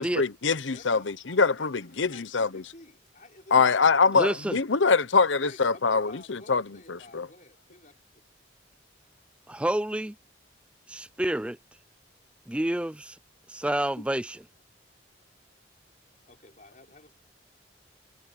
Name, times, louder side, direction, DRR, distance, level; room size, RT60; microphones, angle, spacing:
voice 1, 0.0-1.0 1.3-1.7 2.0-2.6 3.5-6.6 6.9-7.3, left 4 dB, 80° left, 0.9 m, -23 dB
voice 2, 0.7-3.9 5.4-8.2 16.3-17.2, left 2 dB, 40° left, 5.7 m, -51 dB
voice 3, 4.1-4.6 9.5-10.1 10.9-11.6 12.5-13.2 13.5-14.4, right 1 dB, 5° right, 0.4 m, -29 dB
head